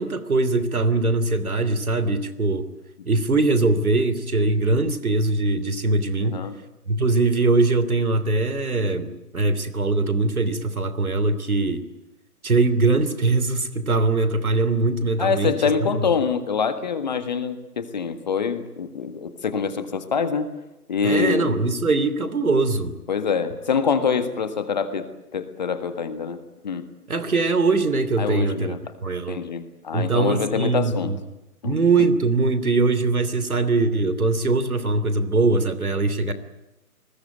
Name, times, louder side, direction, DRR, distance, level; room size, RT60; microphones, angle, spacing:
voice 1, 0.0-2.7 3.0-6.4 6.9-11.8 12.4-16.0 21.0-23.0 27.1-29.4 29.9-31.2 31.6-36.3, right 3 dB, 65° right, 12 dB, 3.1 m, -22 dB
voice 2, 6.2-6.5 15.2-20.5 20.9-21.5 23.1-25.0 25.3-26.4 26.6-26.8 28.2-28.8 29.3-31.1 31.6-31.8, left 6 dB, 30° left, 10 dB, 1.7 m, -25 dB
28.0 x 20.5 x 9.3 m, 0.94 s
figure-of-eight pair, 150°, 46 cm